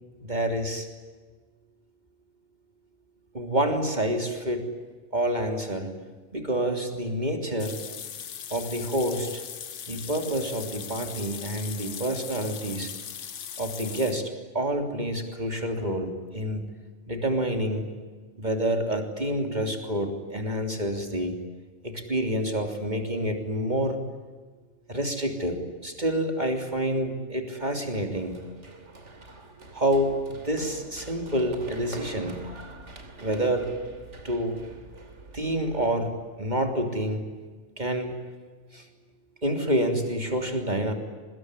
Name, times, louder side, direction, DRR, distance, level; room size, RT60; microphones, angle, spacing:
voice 1, 0.2-0.9 3.3-4.7 5.1-5.9 6.3-7.8 8.5-9.4 9.9-12.9 13.6-16.7 17.1-17.9 18.4-21.4 21.8-24.0 24.9-28.4 29.7-32.4 33.2-33.8 34.2-34.6 35.3-37.2 37.8-38.2 38.7-38.9 39.4-40.9, right 1 dB, 35° right, 4 dB, 3.5 m, -28 dB
sound 1, 7.6-14.3, left 8 dB, 70° left, 1.3 m, -39 dB
Run, 28.1-35.9, right 2 dB, 70° right, 3.2 m, -45 dB
24.5 x 21.5 x 9.8 m, 1.4 s
omnidirectional pair, 1.3 m